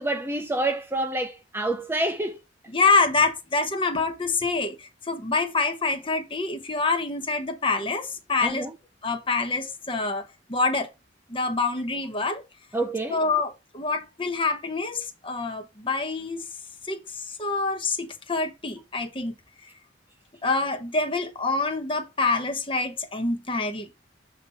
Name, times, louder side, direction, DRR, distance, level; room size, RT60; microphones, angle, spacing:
voice 1, 0.0-2.4 8.4-8.7 12.7-13.2, right 2 dB, 10° right, 0.4 m, -28 dB
voice 2, 2.7-8.7 9.0-10.9 11.3-12.4 13.1-16.5 16.8-19.3 20.4-23.9, left 3 dB, 25° left, 0.9 m, -26 dB
7.0 x 2.7 x 5.6 m
head